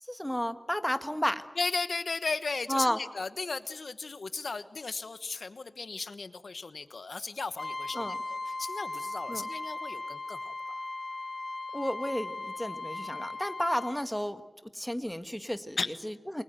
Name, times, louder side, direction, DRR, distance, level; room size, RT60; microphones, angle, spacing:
voice 1, 0.0-1.4 2.7-3.0 7.9-8.2 9.3-9.5 11.7-14.4 14.7-16.4, equal, 5° left, 10 dB, 1.5 m, -32 dB
voice 2, 1.6-8.1 8.6-10.5 15.8-15.9, left 4 dB, 85° left, 12 dB, 1.2 m, -35 dB
Trumpet, 7.6-14.0, left 2 dB, 70° left, 3.1 m, -38 dB
28.5 x 22.5 x 7.8 m, 1.1 s
wide cardioid pair, 65°, 0 cm